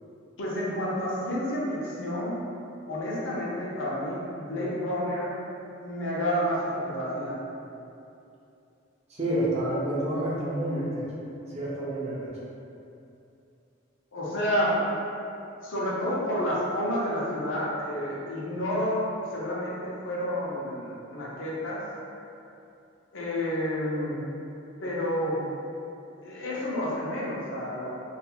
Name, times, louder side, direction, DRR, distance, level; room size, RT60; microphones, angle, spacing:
voice 1, 0.4-2.5 2.9-5.3 5.8-7.4 14.1-14.8 15.6-19.0 19.3-21.8 23.1-24.2 24.8-25.4 26.2-27.9, equal, 70° left, -6 dB, 0.6 m, -30 dB
voice 2, 9.1-11.0 11.5-12.3, right 1 dB, 30° right, -7 dB, 0.5 m, -29 dB
2.4 x 2.4 x 2.8 m, 2.7 s
head